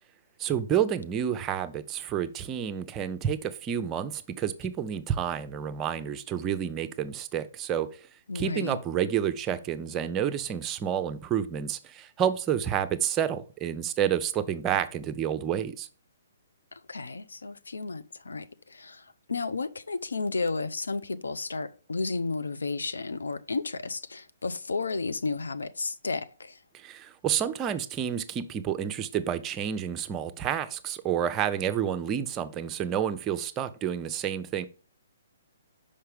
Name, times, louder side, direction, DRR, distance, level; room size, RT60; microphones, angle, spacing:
voice 1, 0.4-8.1 8.3-15.9 26.7-34.7, right 9 dB, 20° right, 0.6 m, -29 dB
voice 2, 8.3-8.8 16.7-26.6, left 3 dB, 80° left, 0.5 m, -33 dB
5.6 x 5.2 x 3.3 m
figure-of-eight pair, 130°, 0 cm